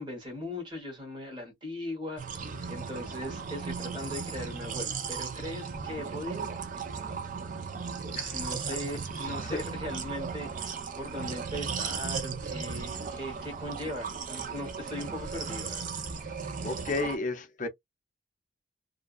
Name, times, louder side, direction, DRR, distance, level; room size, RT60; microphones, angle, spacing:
voice 1, 0.0-2.2 2.7-6.5 8.3-10.5 11.0-16.1, left 1 dB, 25° right, 1.2 m, -39 dB
sound 1, 2.2-17.2, right 5 dB, 40° right, 0.4 m, -36 dB
voice 2, 9.3-9.6 16.6-17.7, left 3 dB, 40° left, 0.5 m, -33 dB
2.5 x 2.2 x 2.3 m
head